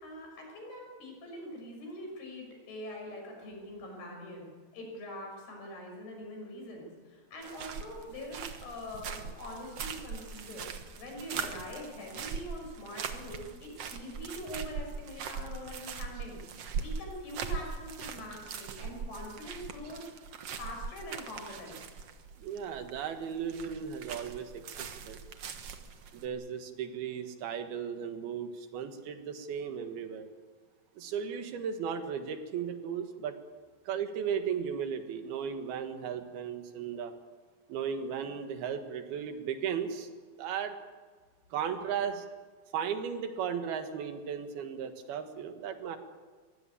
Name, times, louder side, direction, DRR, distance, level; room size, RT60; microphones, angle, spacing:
voice 1, 0.0-10.6 11.0-16.4 16.8-20.1 20.5-21.9, left 1 dB, 85° left, 1 dB, 8.0 m, -43 dB
sound 1, 7.4-26.3, right 6 dB, 55° right, 1.8 m, -41 dB
voice 2, 22.4-25.2 26.1-30.3 31.0-33.4 33.9-37.2 37.7-40.1 40.4-40.8 41.5-42.3 42.7-46.0, right 7 dB, 80° right, 7 dB, 3.4 m, -36 dB
23.0 x 16.5 x 8.6 m, 1.5 s
omnidirectional pair, 4.4 m